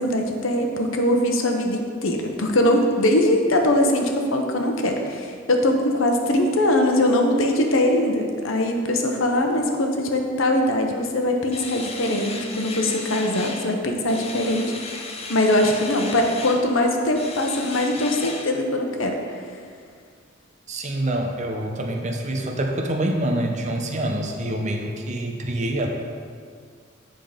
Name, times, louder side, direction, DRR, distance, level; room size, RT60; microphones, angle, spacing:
voice 1, 0.0-15.0 15.3-19.1, left 1 dB, 85° left, 3 dB, 0.9 m, -21 dB
sound 1, 11.5-13.7 14.1-16.7 17.2-18.5, left 4 dB, 30° left, 0.6 m, -35 dB
voice 2, 20.7-25.9, right 1 dB, 35° right, 2 dB, 0.7 m, -26 dB
9.0 x 3.8 x 5.1 m, 2.1 s
head